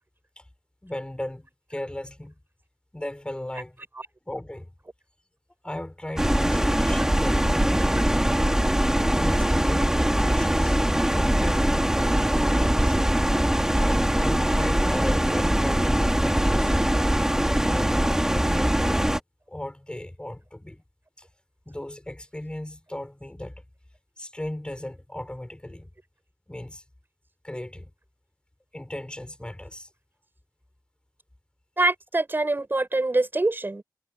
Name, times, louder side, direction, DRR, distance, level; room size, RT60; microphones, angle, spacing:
voice 1, 0.8-2.3 2.9-3.8 4.3-4.7 5.6-8.4 9.1-10.8 11.1-11.7 12.4-12.9 13.8-16.8 17.6-18.0 18.3-19.2 19.5-20.8 21.2-21.3 21.7-23.6 24.2-25.9 26.5-26.8 27.4-27.9 28.7-29.9, left 1 dB, 15° left, 6.2 m, -37 dB
sound 1, 6.2-19.2, right 1 dB, 10° right, 2.8 m, -22 dB
voice 2, 31.8-33.8, right 2 dB, 30° right, 6.4 m, -24 dB
wide cardioid pair, 80°, 7 cm